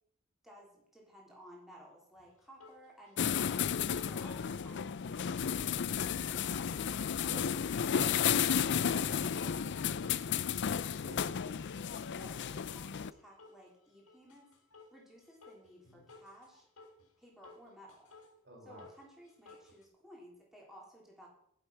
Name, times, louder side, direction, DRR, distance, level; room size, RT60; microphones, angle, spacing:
voice 1, 0.4-3.6 3.9-5.6 12.0-14.5 14.9-16.7 17.2-18.1 18.6-21.3, equal, ahead, -3 dB, 3.6 m, -56 dB
sound 1, 2.2-2.3 2.6-6.2 6.6-9.5 9.8-10.3 10.7-10.9 11.4-11.6 12.0-12.9 13.4-13.7 14.1-15.0 15.4-17.1 17.4-18.3 18.8-19.8, left 3 dB, 80° left, 3.4 m, -57 dB
sound 2, 3.2-13.1, left 7 dB, 55° left, 0.5 m, -33 dB
voice 2, 7.1-7.6 7.9-11.4 18.4-18.8, right 1 dB, 50° right, 0 dB, 4.8 m, -50 dB
11.0 x 11.0 x 5.8 m, 0.71 s
head